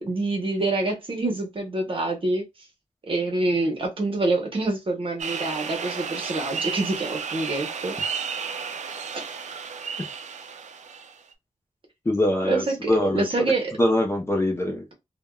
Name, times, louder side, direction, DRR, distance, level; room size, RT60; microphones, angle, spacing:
voice 1, 0.0-2.4 3.1-7.9 9.1-9.2 12.4-13.7 14.7-14.8, right 2 dB, 45° right, 0.8 m, -26 dB
sound 1, 5.2-11.3, right 6 dB, 70° right, 0.4 m, -33 dB
voice 2, 12.1-13.2 13.8-14.8, left 1 dB, 20° left, 0.6 m, -23 dB
3.4 x 2.2 x 2.2 m
wide cardioid pair, 160°, 13 cm